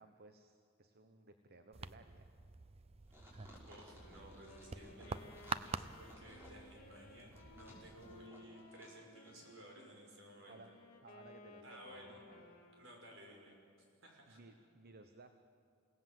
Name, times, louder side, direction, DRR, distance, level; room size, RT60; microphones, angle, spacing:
voice 1, 0.0-2.3 10.5-12.0 12.3-12.5 14.3-15.4, right 2 dB, 50° right, 8 dB, 1.0 m, -59 dB
sound 1, 1.7-8.3, right 4 dB, 30° right, 0.5 m, -48 dB
sound 2, 3.1-9.0 9.2-9.3, equal, 10° right, 5.9 m, -60 dB
voice 2, 3.7-10.6 11.6-12.2 12.8-13.6 14.0-14.4, right 1 dB, 65° right, 0 dB, 6.0 m, -57 dB
Wind instrument woodwind instrument, 3.8-10.0 10.5-13.1, left 3 dB, 45° left, 3.2 m, -60 dB
29.5 x 17.5 x 7.7 m, 2.5 s
head